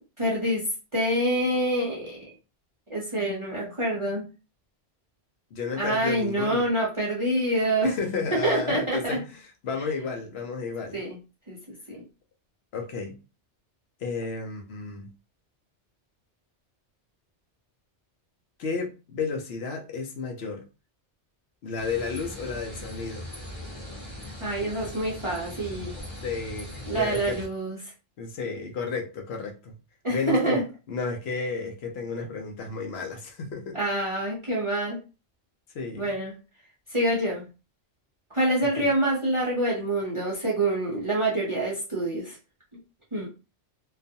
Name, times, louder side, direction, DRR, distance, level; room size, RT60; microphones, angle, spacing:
voice 1, 0.2-0.6 0.9-2.3 2.9-4.2 5.8-7.9 8.4-9.2 10.9-11.2 11.5-11.6 11.9-12.0 24.4-25.9 26.9-27.8 30.0-30.6 33.7-35.0 36.0-36.3 36.9-37.4 38.3-42.4 43.1-43.3, right 1 dB, 35° right, 0.5 m, -26 dB
voice 2, 5.5-6.7 7.8-11.0 12.7-13.2 14.0-15.1 18.6-20.6 21.6-23.3 26.2-27.4 28.2-29.7 30.1-30.6 30.9-33.8 35.7-36.1 38.8-38.9, left 4 dB, 65° left, 0.8 m, -32 dB
sound 1, 21.8-27.5, left 1 dB, 35° left, 0.9 m, -40 dB
2.4 x 2.3 x 2.6 m
omnidirectional pair, 1.2 m